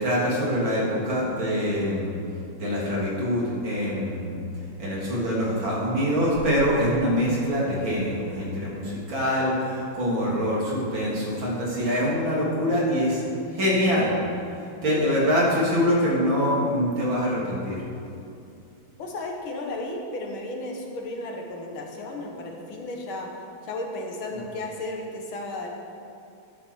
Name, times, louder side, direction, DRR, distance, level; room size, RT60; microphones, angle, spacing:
voice 1, 0.0-2.1 2.6-4.4 4.8-13.2 13.5-14.1 14.8-17.8, equal, 60° right, -5 dB, 3.7 m, -24 dB
voice 2, 19.0-23.3 23.6-25.7, left 2 dB, 70° left, 1 dB, 2.2 m, -34 dB
14.5 x 10.5 x 4.6 m, 2.6 s
omnidirectional pair, 2.4 m